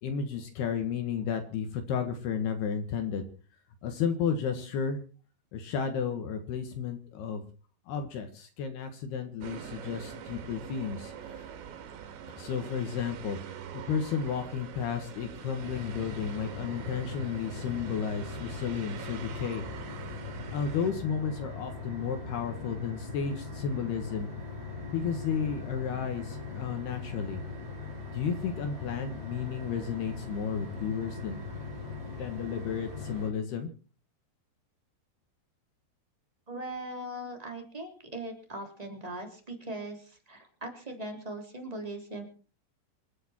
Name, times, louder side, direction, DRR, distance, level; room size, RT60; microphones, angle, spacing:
voice 1, 0.0-3.3 3.8-5.0 5.5-7.4 7.9-11.4 12.4-13.4 13.7-19.6 20.5-24.3 24.9-27.4 28.1-31.4 32.2-33.7, left 7 dB, 70° left, 6 dB, 3.5 m, -33 dB
sound 1, 9.4-20.9, right 8 dB, 90° right, 4.3 m, -44 dB
sound 2, 15.6-33.3, left 4 dB, 35° right, 6.0 m, -40 dB
voice 2, 36.5-42.2, right 1 dB, 10° right, 3 dB, 3.0 m, -40 dB
27.5 x 9.5 x 4.5 m, 0.38 s
omnidirectional pair, 5.0 m